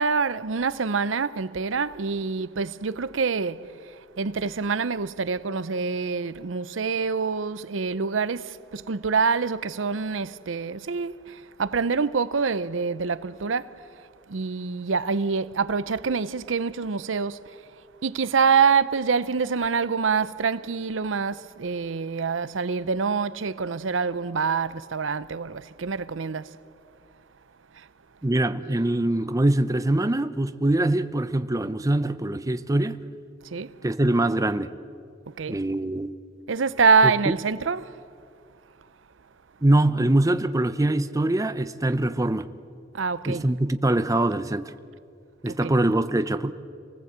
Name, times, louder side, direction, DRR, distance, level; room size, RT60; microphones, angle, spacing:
voice 1, 0.0-3.7 4.2-13.7 14.3-17.6 18.0-26.5 27.8-27.9 33.5-33.7 35.4-35.6 36.5-37.9 42.9-43.4 45.5-45.7, right 5 dB, 85° right, 0.7 m, -25 dB
voice 2, 28.2-33.0 33.8-34.7 35.5-36.1 37.0-37.1 39.6-42.5 43.3-44.7 45.4-46.5, right 1 dB, 20° right, 0.6 m, -23 dB
28.0 x 19.0 x 8.1 m
head